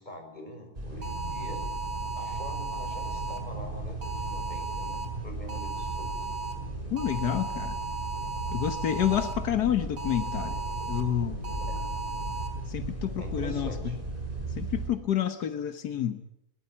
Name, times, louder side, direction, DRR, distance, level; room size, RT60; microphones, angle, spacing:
voice 1, 0.0-1.6 2.1-6.3 9.1-9.3 13.2-14.0, left 1 dB, 25° left, 4 dB, 5.8 m, -44 dB
sound 1, 0.8-14.9, right 2 dB, 30° right, 6.0 m, -36 dB
sound 2, 1.0-3.4 4.0-5.1 5.5-6.5 7.0-9.3 10.0-11.0 11.4-12.5, right 3 dB, 60° right, 4.4 m, -36 dB
voice 2, 6.9-7.8 8.5-10.6 10.9-11.4 12.7-13.9 14.6-16.2, left 10 dB, 85° left, 9 dB, 1.7 m, -29 dB
21.5 x 19.5 x 8.6 m, 0.80 s
omnidirectional pair, 1.7 m